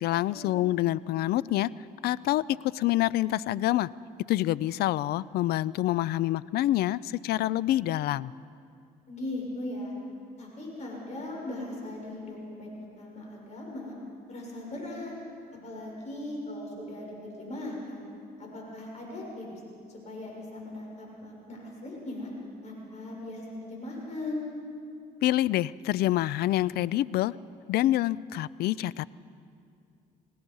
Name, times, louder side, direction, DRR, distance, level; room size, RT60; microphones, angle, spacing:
voice 1, 0.0-1.7 2.0-3.9 4.3-8.3 25.2-27.4 27.7-29.1, left 14 dB, 70° left, 20 dB, 0.4 m, -27 dB
voice 2, 9.1-9.9 10.4-12.7 13.0-13.9 14.3-15.1 15.6-18.1 18.4-19.5 20.0-22.3 22.6-24.4, left 1 dB, 45° left, -2 dB, 6.5 m, -38 dB
27.0 x 18.0 x 5.5 m, 2.4 s
cardioid pair, 110°, 17 cm